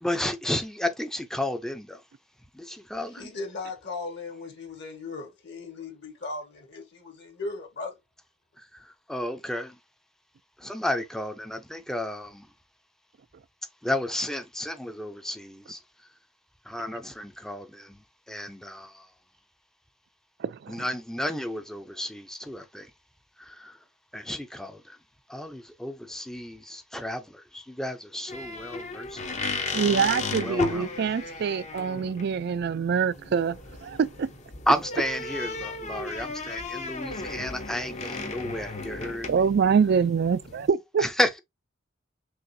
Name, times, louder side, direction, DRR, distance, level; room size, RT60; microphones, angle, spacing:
voice 1, 0.0-2.0 2.5-3.3 8.6-9.8 10.6-12.5 13.8-15.8 16.6-19.1 20.7-22.9 23.4-23.8 24.1-25.0 25.3-29.2 30.4-31.0 34.7-39.4 41.0-41.4, left 1 dB, ahead, 0.5 m, -32 dB
voice 2, 3.2-8.0, left 3 dB, 55° left, 1.5 m, -37 dB
voice 3, 20.4-20.8 29.7-33.6 33.8-34.3 39.3-41.0, right 6 dB, 55° right, 0.3 m, -25 dB
sound 1, 28.3-40.7, left 3 dB, 35° left, 0.8 m, -35 dB
6.3 x 2.5 x 2.7 m
head